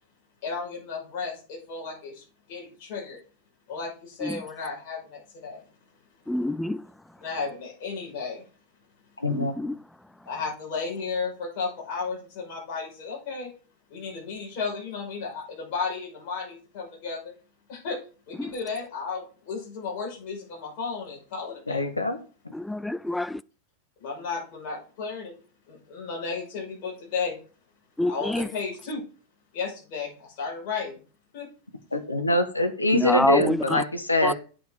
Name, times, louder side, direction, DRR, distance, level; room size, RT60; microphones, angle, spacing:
voice 1, 0.4-2.2 2.5-3.2 3.7-5.6 7.2-8.5 10.3-13.5 13.9-17.3 17.7-18.0 18.3-21.8 24.0-25.3 25.7-27.4 28.1-29.0 29.5-31.0 31.3-31.5, left 5 dB, 45° left, 5.6 m, -34 dB
voice 2, 6.3-6.8 9.3-9.7 18.4-18.5 22.5-23.4 28.0-28.5 32.9-33.8 34.2-34.3, left 1 dB, 5° left, 0.3 m, -26 dB
voice 3, 9.2-9.6 21.7-22.2 31.9-34.3, left 1 dB, 85° left, 1.3 m, -24 dB
8.6 x 6.2 x 4.9 m
figure-of-eight pair, 90°, 0 cm